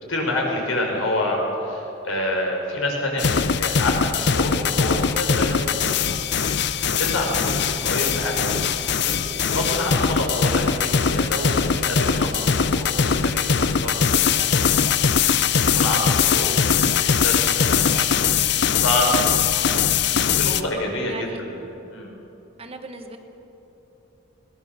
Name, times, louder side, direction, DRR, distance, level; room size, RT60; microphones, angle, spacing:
voice 1, 0.1-13.5 13.8-15.4 15.7-18.3 18.5-19.2 19.8-21.3 21.9-22.1, left 1 dB, 90° left, 0 dB, 5.3 m, -28 dB
sound 1, 3.2-20.6, left 6 dB, 55° left, 0.7 m, -21 dB
sound 2, 8.9-13.5, right 1 dB, 65° right, 2.7 m, -43 dB
voice 2, 19.1-19.4 21.1-21.4 22.6-23.2, right 3 dB, 30° right, 5 dB, 1.4 m, -37 dB
22.0 x 19.0 x 6.7 m, 3.0 s
head